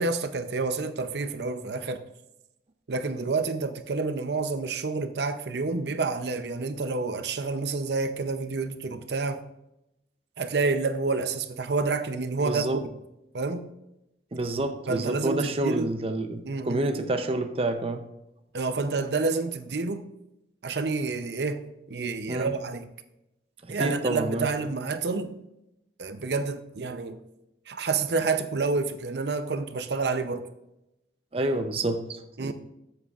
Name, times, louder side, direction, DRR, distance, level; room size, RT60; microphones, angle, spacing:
voice 1, 0.0-2.0 2.9-9.4 10.4-12.8 13.3-13.7 14.9-15.9 16.4-16.8 18.5-20.0 20.6-21.6 21.9-22.9 23.7-25.3 26.0-27.2 27.7-30.5 32.4-32.5, right 3 dB, 70° right, 9 dB, 0.6 m, -29 dB
voice 2, 12.4-12.8 14.3-18.1 22.3-22.5 23.6-24.5 31.3-32.5, right 2 dB, 35° right, 6 dB, 0.6 m, -28 dB
13.5 x 7.9 x 2.4 m, 0.88 s
head